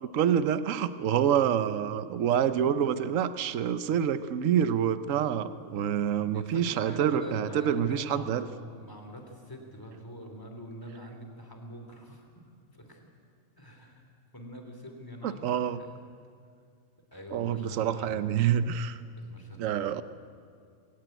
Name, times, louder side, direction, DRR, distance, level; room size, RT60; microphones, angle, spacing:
voice 1, 0.0-8.4 15.2-15.8 17.3-19.0 19.6-20.0, right 9 dB, 70° right, 13 dB, 1.1 m, -27 dB
voice 2, 6.3-8.5 8.7-12.3 12.7-13.1 13.6-14.1 14.3-16.0 17.1-18.5 19.2-20.0, equal, 15° left, 3 dB, 3.1 m, -44 dB
21.0 x 17.5 x 9.2 m, 2.2 s
omnidirectional pair, 1.4 m